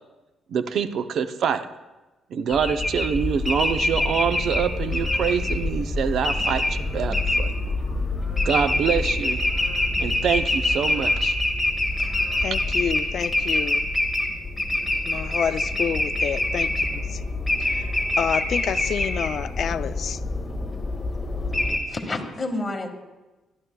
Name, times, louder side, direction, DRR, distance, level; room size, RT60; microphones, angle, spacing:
voice 1, 0.5-1.7 2.3-7.5 8.4-9.4 10.0-11.4, right 7 dB, 65° right, 10 dB, 0.6 m, -25 dB
sound 1, 2.5-21.8, left 2 dB, 10° left, 1.9 m, -25 dB
voice 2, 12.4-13.9 15.0-17.2 17.6-17.9 18.2-20.2, left 8 dB, 60° left, 13 dB, 0.4 m, -29 dB
voice 3, 21.3-22.9, left 2 dB, 25° left, 3 dB, 1.7 m, -31 dB
16.5 x 12.0 x 2.3 m, 1.1 s
cardioid pair, 90°, 0 cm